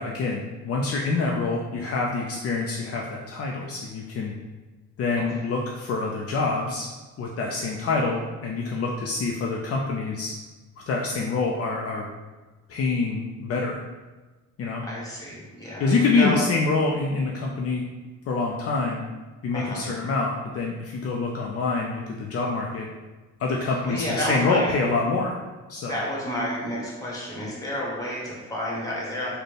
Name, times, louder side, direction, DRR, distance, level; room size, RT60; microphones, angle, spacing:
voice 1, 0.0-4.3 5.0-6.9 7.2-10.3 10.9-12.1 12.7-13.8 14.6-14.8 15.8-17.8 18.3-19.0 19.4-22.9 23.4-25.4 25.7-26.0, left 3 dB, 50° left, -1 dB, 0.4 m, -26 dB
voice 2, 14.8-16.4 19.5-19.8 23.7-24.7 25.9-29.4, equal, 10° left, -4 dB, 1.2 m, -30 dB
4.1 x 2.2 x 3.3 m, 1.2 s
cardioid pair, 90°, 30 cm